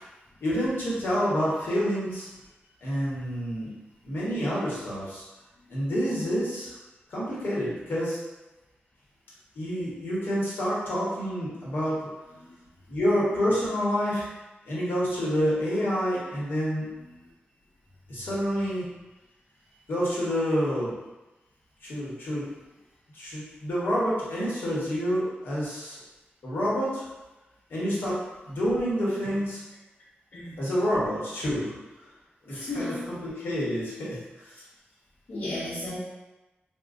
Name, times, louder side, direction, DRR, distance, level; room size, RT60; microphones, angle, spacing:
voice 1, 0.4-2.3 2.8-3.7 4.0-5.2 5.7-6.7 7.1-8.2 9.5-12.0 12.9-14.2 14.6-16.9 18.1-18.8 19.9-20.9 21.8-22.4 23.1-26.0 26.4-27.0 27.7-29.6 30.6-31.7 32.4-34.2, equal, 75° left, -7 dB, 1.2 m, -28 dB
voice 2, 16.8-17.1 29.2-29.4 30.3-30.6 32.5-33.1 35.3-36.0, left 1 dB, 60° left, -10 dB, 0.8 m, -35 dB
4.4 x 2.3 x 2.5 m, 1.1 s
wide cardioid pair, 170°, 4 cm